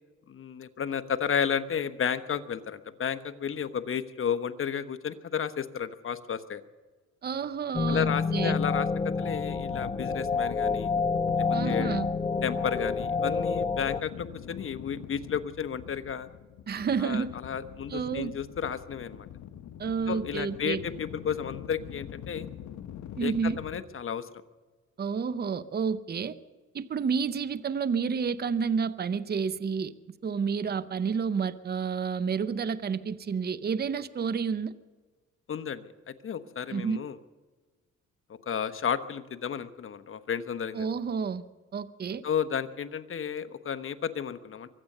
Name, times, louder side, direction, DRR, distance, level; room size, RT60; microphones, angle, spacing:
voice 1, 0.3-6.6 7.9-8.9 9.2-10.9 11.4-12.0 12.4-16.3 17.0-19.3 20.1-22.5 23.2-24.3 35.5-37.2 38.5-40.9 42.2-44.7, left 7 dB, 45° left, 11 dB, 1.1 m, -32 dB
voice 2, 7.2-8.6 11.5-12.1 16.7-17.3 17.9-18.3 19.8-20.8 23.2-23.6 25.0-26.4 26.7-29.9 30.2-34.7 36.7-37.0 40.7-41.5 41.7-42.2, right 6 dB, 35° right, 14 dB, 0.7 m, -30 dB
sound 1, 7.7-14.0, left 4 dB, 15° left, 0.5 m, -28 dB
sound 2, 9.1-23.8, left 10 dB, 70° left, 1.0 m, -43 dB
24.0 x 8.5 x 6.7 m, 1.3 s
cardioid pair, 90°, 30 cm